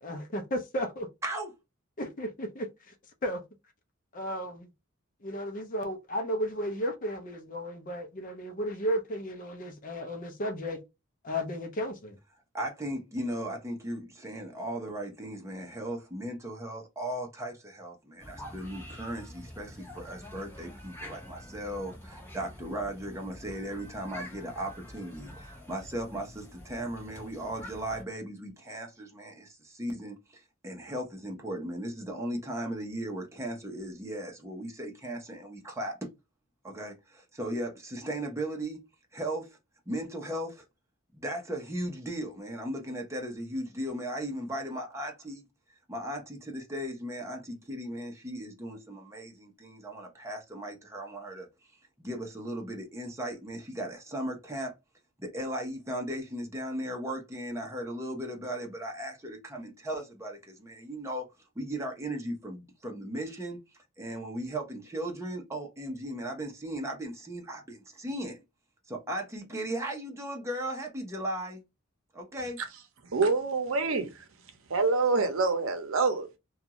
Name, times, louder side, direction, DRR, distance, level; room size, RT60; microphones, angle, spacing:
voice 1, 0.0-1.1 2.0-2.9 3.2-3.4 4.1-4.7 5.2-10.8 11.2-12.2, equal, 40° left, 0.6 m, -34 dB
voice 2, 12.5-36.1 36.6-38.8 39.1-39.6 39.9-40.6 41.1-45.4 45.9-51.5 52.0-54.7 55.2-61.3 61.6-63.6 64.0-68.4 68.9-71.6 72.1-72.6, right 1 dB, 15° right, 0.7 m, -37 dB
sound 1, 18.2-28.0, left 1 dB, 10° left, 0.9 m, -47 dB
voice 3, 73.1-74.2 74.7-76.4, right 4 dB, 70° right, 0.7 m, -26 dB
2.5 x 2.3 x 2.9 m
head